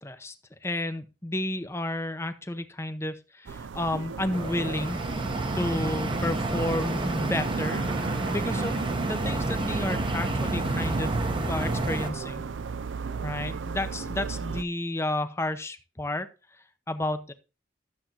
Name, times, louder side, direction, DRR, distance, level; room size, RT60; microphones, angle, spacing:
voice 1, 0.0-0.3 0.6-5.0 5.5-11.2 11.5-12.4 13.2-16.3 16.9-17.3, left 1 dB, 15° left, 10 dB, 0.7 m, -31 dB
sound 1, 3.5-14.6, right 5 dB, 75° right, 0.5 m, -35 dB
sound 2, 4.3-12.1, right 2 dB, 25° right, 0.9 m, -29 dB
12.5 x 7.5 x 2.9 m, 0.31 s
head